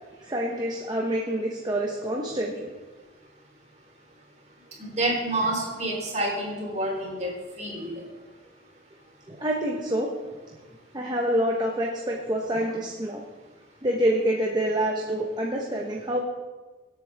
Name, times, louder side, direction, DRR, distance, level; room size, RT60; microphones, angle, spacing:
voice 1, 0.2-2.7 9.3-10.1 10.9-13.2 13.8-16.2, right 1 dB, 25° right, -1 dB, 1.1 m, -27 dB
voice 2, 4.8-7.3 7.6-7.9, right 1 dB, 40° right, -2 dB, 3.7 m, -28 dB
24.0 x 8.4 x 3.5 m, 1.3 s
head